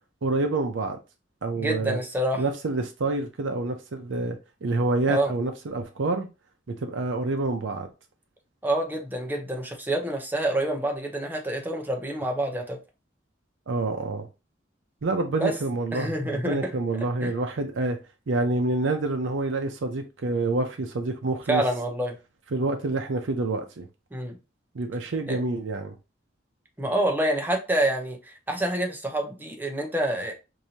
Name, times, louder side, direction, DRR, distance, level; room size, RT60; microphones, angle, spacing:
voice 1, 0.2-1.0 1.4-2.0 2.4-6.3 6.7-7.9 13.7-14.3 15.0-18.0 18.3-21.6 22.5-23.9 24.7-25.9, right 2 dB, 80° right, 0.6 m, -27 dB
voice 2, 1.6-2.4 5.1-5.3 8.6-12.8 15.4-15.5 15.9-16.6 17.2-17.3 21.5-22.2 24.1-24.4 25.3-25.4 26.8-30.3, right 1 dB, 10° right, 0.7 m, -27 dB
4.7 x 2.6 x 2.8 m
head